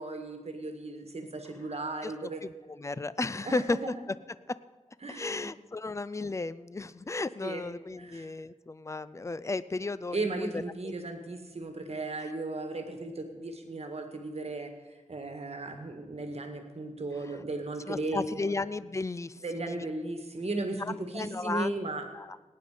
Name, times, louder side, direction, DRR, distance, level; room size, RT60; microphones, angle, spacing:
voice 1, 0.0-2.4 3.5-4.0 5.0-5.5 7.4-7.7 8.0-8.3 10.1-18.2 19.4-22.0, right 2 dB, 55° right, 5 dB, 1.8 m, -36 dB
voice 2, 2.0-3.8 5.1-10.9 17.2-17.3 17.9-19.9 20.8-21.8 22.1-22.4, left 3 dB, 25° left, 16 dB, 0.4 m, -34 dB
18.5 x 9.5 x 5.1 m, 1.2 s
wide cardioid pair, 100°, 13 cm